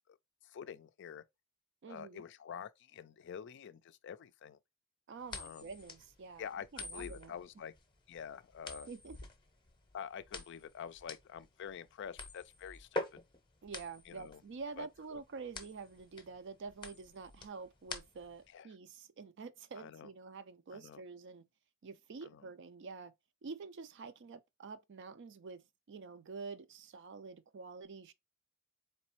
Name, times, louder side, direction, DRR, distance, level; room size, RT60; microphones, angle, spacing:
voice 1, 0.4-1.2 1.9-4.6 5.4-5.7 6.4-7.7 8.1-8.9 9.9-13.2 14.1-14.4 14.8-15.2 18.5-18.7 19.8-20.1 20.7-21.0 22.2-22.5, left 7 dB, 55° left, 0.3 m, -47 dB
voice 2, 1.8-2.2 5.1-6.4 6.7-7.4 8.9-9.2 13.6-21.4 21.8-23.1 23.4-28.1, right 4 dB, 55° right, 0.4 m, -48 dB
sound 1, 5.3-18.5, left 2 dB, 20° left, 0.7 m, -46 dB
4.1 x 3.2 x 3.0 m
head